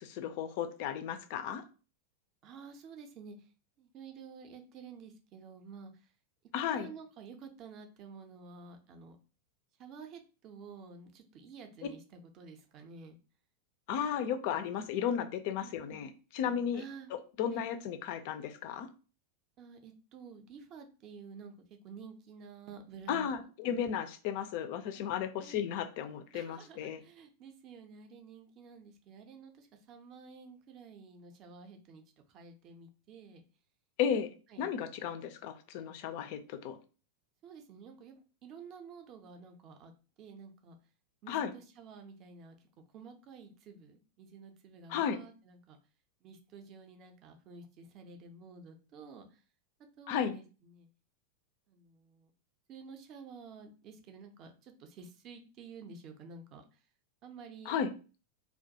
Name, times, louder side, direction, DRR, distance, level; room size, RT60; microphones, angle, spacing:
voice 1, 0.2-1.6 6.5-6.9 13.9-16.8 17.4-18.9 23.1-27.0 34.0-34.3 34.6-36.8 41.3-41.5 44.9-45.2 50.1-50.3 57.7-57.9, left 8 dB, 45° left, 9 dB, 0.3 m, -34 dB
voice 2, 2.4-3.4 3.8-5.9 6.7-9.2 9.8-13.2 15.6-16.0 16.7-17.1 17.5-17.6 19.6-21.5 21.8-23.9 24.9-25.0 25.4-25.6 26.3-32.0 32.3-33.4 34.5-34.7 37.4-39.9 40.2-40.8 41.2-42.6 42.9-45.8 46.2-49.4 50.0-50.9 51.7-52.3 52.7-56.6 57.2-57.8, right 5 dB, 35° right, 5 dB, 0.4 m, -51 dB
2.2 x 2.2 x 2.6 m, 0.35 s
figure-of-eight pair, 90°, 0 cm